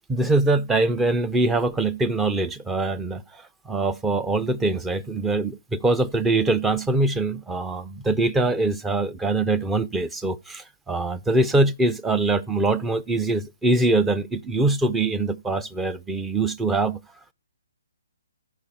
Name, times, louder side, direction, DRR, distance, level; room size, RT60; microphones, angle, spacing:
voice 1, 0.1-17.0, right 2 dB, 10° right, 0.5 m, -23 dB
14.5 x 5.0 x 4.2 m
figure-of-eight pair, 135°, 0 cm